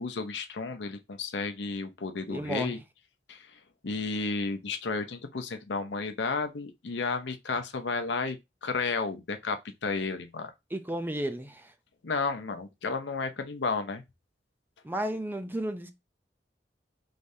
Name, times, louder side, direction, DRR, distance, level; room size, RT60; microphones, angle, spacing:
voice 1, 0.0-2.8 3.3-3.5 3.8-10.5 12.0-14.0, left 4 dB, 75° left, 0.7 m, -32 dB
voice 2, 2.3-2.8 10.7-11.7 14.8-15.9, right 1 dB, 10° right, 0.5 m, -33 dB
5.1 x 3.2 x 2.7 m
head